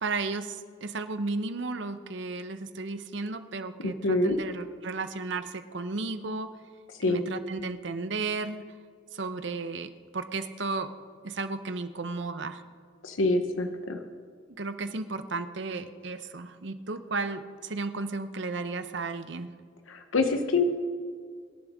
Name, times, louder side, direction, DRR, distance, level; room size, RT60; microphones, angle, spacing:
voice 1, 0.0-6.5 7.0-8.6 9.1-10.9 11.2-12.6 14.6-19.5, right 3 dB, 60° right, 10 dB, 0.8 m, -34 dB
voice 2, 3.8-4.4 7.0-7.2 13.0-14.0 19.9-20.6, left 3 dB, 90° left, 6 dB, 1.0 m, -26 dB
23.5 x 11.0 x 3.6 m, 2.1 s
head